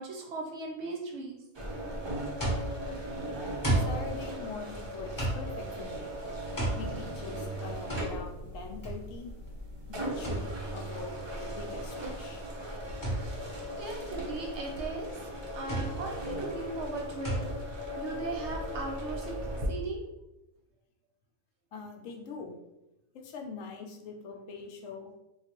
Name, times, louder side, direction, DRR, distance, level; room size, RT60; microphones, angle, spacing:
voice 1, 0.0-1.4 12.9-13.3 13.8-15.1 15.5-17.4 18.0-19.4 19.7-20.0, right 3 dB, 65° right, 1 dB, 0.8 m, -38 dB
sound 1, 1.5-19.7, equal, 45° right, 0.3 m, -38 dB
sound 2, 2.4-19.1, right 1 dB, 20° left, 0.7 m, -36 dB
voice 2, 3.8-6.1 6.8-9.3 9.9-10.5 10.7-12.4 21.7-22.5 23.1-25.1, left 4 dB, 75° left, 3 dB, 0.9 m, -43 dB
sound 3, 6.6-12.0, left 3 dB, 30° right, 0.9 m, -51 dB
3.8 x 2.4 x 2.9 m, 0.93 s
omnidirectional pair, 1.4 m